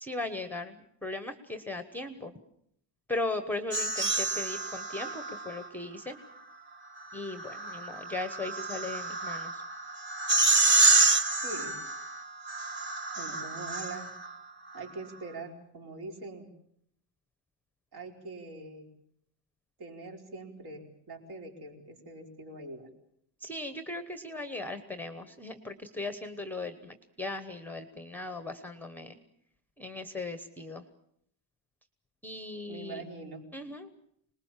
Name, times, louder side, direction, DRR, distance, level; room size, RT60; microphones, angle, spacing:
voice 1, 0.0-2.3 3.1-6.2 7.1-9.6 23.4-29.2 29.8-30.8 32.2-33.0 33.5-33.9, left 2 dB, 5° left, 10 dB, 1.0 m, -38 dB
sound 1, 3.7-5.7 7.1-14.3, right 3 dB, 25° right, 1.7 m, -28 dB
voice 2, 11.4-11.8 13.1-14.1 14.7-16.5 17.9-18.9 19.8-22.9 32.7-33.4, right 3 dB, 55° right, 3 dB, 4.8 m, -43 dB
26.5 x 20.0 x 7.3 m, 0.69 s
cardioid pair, 175°, 46 cm